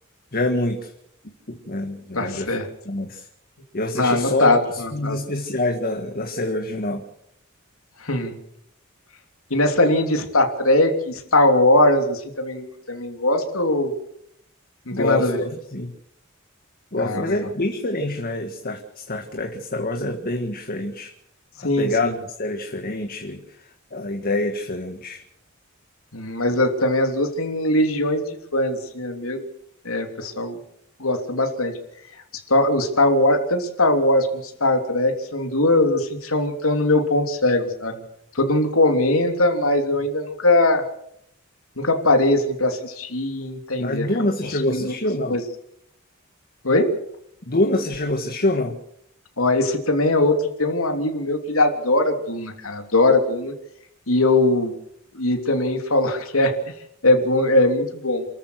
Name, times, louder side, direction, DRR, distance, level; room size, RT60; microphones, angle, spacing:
voice 1, 0.3-0.9 1.5-2.5 2.9-3.2 3.7-4.5 4.9-7.0 14.9-15.3 15.7-15.9 16.9-21.1 21.8-22.1 22.4-23.4 23.9-25.2 43.8-45.3 47.5-48.8, left 1 dB, 45° left, 4 dB, 1.8 m, -25 dB
voice 2, 2.1-2.7 3.9-5.2 8.0-8.4 9.5-13.9 14.9-15.4 17.0-17.3 21.6-22.1 26.1-28.2 28.5-29.5 29.8-30.6 31.0-31.7 32.5-38.0 38.3-40.8 41.8-44.1 44.5-44.9 45.3-45.4 46.6-46.9 49.4-53.5 54.1-54.7 55.1-56.5 57.0-58.3, left 2 dB, 90° left, 5 dB, 3.1 m, -20 dB
29.0 x 14.0 x 6.6 m, 0.73 s
head